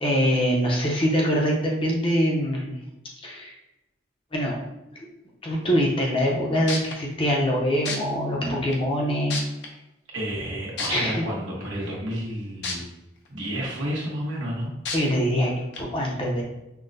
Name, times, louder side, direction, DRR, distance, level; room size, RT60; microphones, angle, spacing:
voice 1, 0.0-2.7 3.2-3.6 4.3-4.6 5.4-9.4 10.9-11.2 14.9-16.4, equal, 25° left, -2 dB, 0.7 m, -24 dB
sound 1, 6.3-6.4 6.7-6.9 7.9-8.0 8.7-8.8 9.3-9.7 10.8-10.9 12.6-12.7 13.3-13.4 14.9-15.0 15.7-15.8, left 3 dB, 65° left, 0.6 m, -29 dB
voice 2, 10.1-12.8 13.3-14.7, equal, 85° right, -4 dB, 1.2 m, -30 dB
5.7 x 2.1 x 2.6 m, 0.93 s
head